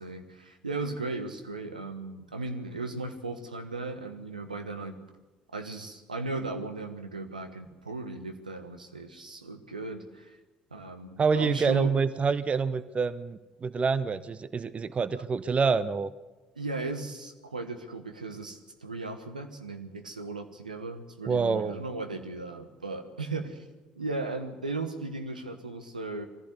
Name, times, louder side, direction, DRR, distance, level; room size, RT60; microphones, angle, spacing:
voice 1, 0.0-5.0 5.5-10.4 10.7-11.9 16.5-23.7 24.0-26.3, right 3 dB, 85° right, 7 dB, 1.3 m, -36 dB
voice 2, 11.2-16.1 21.3-21.8, right 5 dB, 30° right, 16 dB, 0.8 m, -27 dB
22.0 x 15.5 x 8.1 m, 1.2 s
figure-of-eight pair, 55°, 4 cm